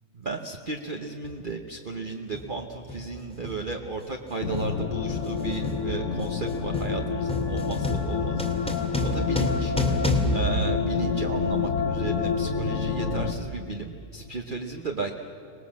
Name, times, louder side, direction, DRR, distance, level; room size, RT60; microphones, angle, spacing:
voice 1, 0.1-8.5 9.0-9.8 10.3-15.1, right 3 dB, 35° right, 3 dB, 1.1 m, -34 dB
sound 1, 1.2-1.4 2.3-2.6 2.9-11.4, left 1 dB, 5° left, 2.2 m, -30 dB
sound 2, 4.4-13.3, left 6 dB, 55° left, 1.5 m, -28 dB
25.5 x 19.5 x 7.4 m, 2.8 s
omnidirectional pair, 1.6 m